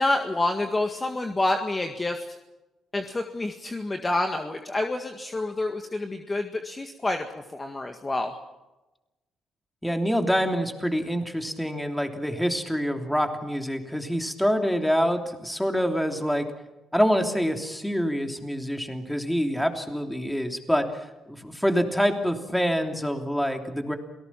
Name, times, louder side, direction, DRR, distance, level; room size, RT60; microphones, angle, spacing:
voice 1, 0.0-2.3 2.9-7.3 7.5-8.4, left 2 dB, 20° left, 5 dB, 1.8 m, -28 dB
voice 2, 9.8-16.5 16.9-24.0, equal, 5° left, 4 dB, 3.1 m, -26 dB
28.0 x 18.5 x 5.9 m, 1.0 s
cardioid pair, 90°, 0 cm